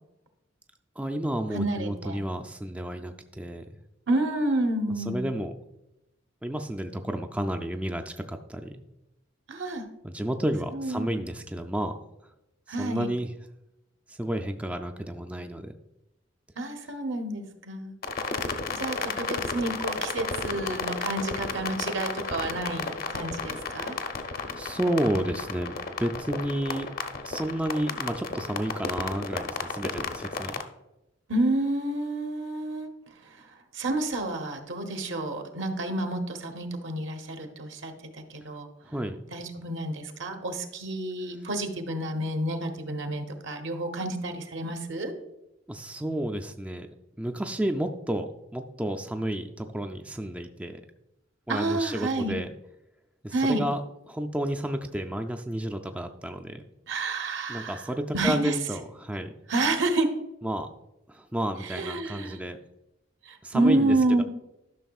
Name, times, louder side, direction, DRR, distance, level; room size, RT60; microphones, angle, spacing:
voice 1, 1.0-3.7 5.1-5.5 6.4-8.8 10.0-11.9 12.8-13.3 14.1-15.7 24.6-26.9 27.2-30.6 38.8-39.2 45.7-46.9 47.2-50.8 51.5-52.5 53.2-53.8 54.1-56.6 57.5-59.3 60.4-60.7 61.1-62.6 63.4-64.2, right 1 dB, 5° right, 5 dB, 0.3 m, -31 dB
voice 2, 1.5-2.2 4.1-5.3 9.5-9.8 10.7-11.1 12.7-13.1 16.6-17.9 18.7-24.0 31.3-32.9 33.2-33.4 33.7-38.7 39.3-45.1 51.5-52.4 53.3-53.6 56.9-57.8 58.1-58.6 59.5-60.1 61.6-62.4 63.2-64.2, right 2 dB, 70° right, 5 dB, 1.0 m, -29 dB
sound 1, 18.0-30.6, left 4 dB, 50° left, 0.7 m, -33 dB
12.5 x 6.1 x 2.4 m, 0.91 s
head